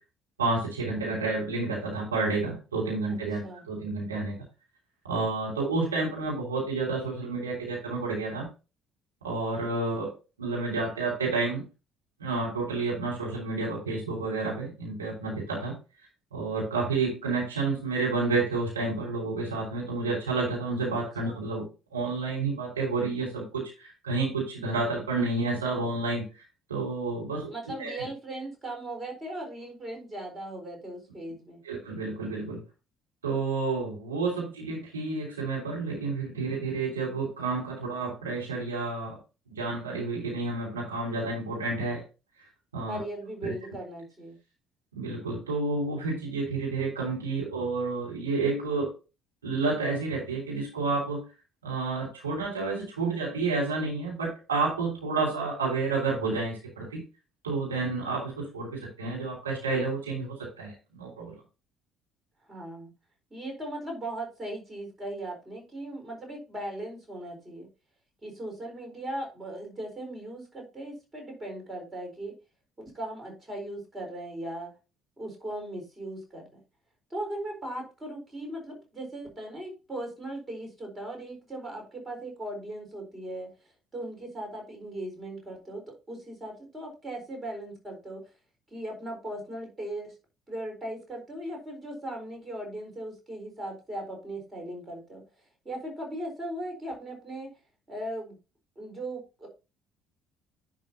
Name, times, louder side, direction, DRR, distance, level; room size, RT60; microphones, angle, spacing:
voice 1, 0.4-4.4 5.1-8.5 9.2-10.1 10.4-11.6 12.2-15.7 16.3-26.4 26.7-27.5 27.8-28.1 31.6-32.6 33.2-39.2 39.5-42.0 42.7-43.0 43.4-43.5 44.9-48.9 49.4-51.2 51.6-57.0 57.4-61.4, right 3 dB, 80° right, -4 dB, 3.2 m, -30 dB
voice 2, 27.5-31.6 42.9-44.3 62.5-62.9 63.3-67.7 68.2-72.3 72.8-74.7 75.2-76.4 77.1-83.5 83.9-88.2 88.7-90.1 90.5-95.2 95.6-97.5 97.9-98.3 98.8-99.5, right 1 dB, 25° right, 2 dB, 4.4 m, -38 dB
10.5 x 6.1 x 2.8 m, 0.30 s
figure-of-eight pair, 50°, 0 cm